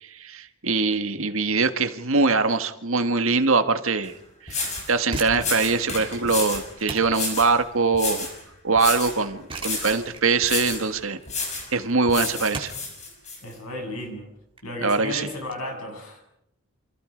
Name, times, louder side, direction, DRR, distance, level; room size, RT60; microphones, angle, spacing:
voice 1, 0.0-4.1 4.4-8.3 8.6-11.2 11.7-12.7 14.8-15.3, right 4 dB, 70° right, 9 dB, 1.7 m, -23 dB
sound 1, 4.0-4.1 4.5-4.9 5.4-6.7 7.1-7.5 7.9-8.4 8.8-9.2 9.6-10.0 10.4-10.9 11.3-11.7 12.1-13.4, left 4 dB, 30° left, 6.1 m, -30 dB
sound 2, 5.0-15.6, right 3 dB, 25° right, 3.8 m, -40 dB
voice 2, 13.4-14.3 14.6-16.2, left 1 dB, 80° left, 3 dB, 7.4 m, -34 dB
29.5 x 26.5 x 5.2 m, 0.79 s
head